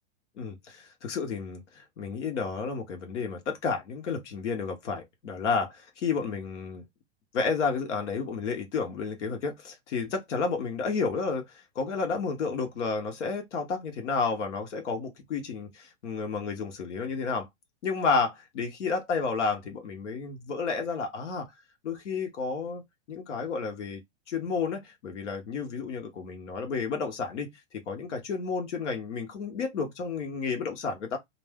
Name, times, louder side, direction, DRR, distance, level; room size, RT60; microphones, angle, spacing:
voice 1, 0.4-6.8 7.3-17.5 17.8-21.5 21.8-22.8 23.1-24.0 24.3-31.2, left 5 dB, 85° left, 1.0 m, -31 dB
2.5 x 2.2 x 3.4 m
supercardioid pair, 160°, 35 cm